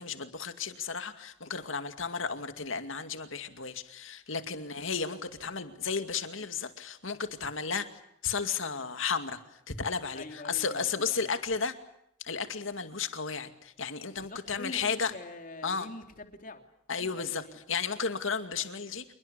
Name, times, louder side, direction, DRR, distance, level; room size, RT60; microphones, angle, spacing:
voice 1, 0.0-7.9 8.2-9.4 9.7-11.8 12.2-15.1 15.6-15.9 16.9-17.4 17.7-19.0, left 5 dB, 65° left, 2.4 m, -33 dB
voice 2, 10.1-11.3 14.1-16.6 16.9-17.6, left 2 dB, 40° left, 3.1 m, -45 dB
27.5 x 22.0 x 8.3 m
head